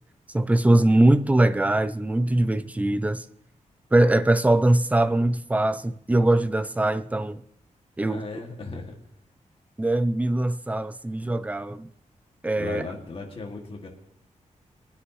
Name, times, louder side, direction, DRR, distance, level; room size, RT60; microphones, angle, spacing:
voice 1, 0.3-3.2 3.9-7.4 8.0-8.2 9.8-11.9 12.4-12.9, right 1 dB, 10° right, 0.5 m, -22 dB
voice 2, 8.1-8.9 12.6-13.9, left 3 dB, 45° left, 2.3 m, -36 dB
22.0 x 9.8 x 3.2 m
wide cardioid pair, 150°, 13 cm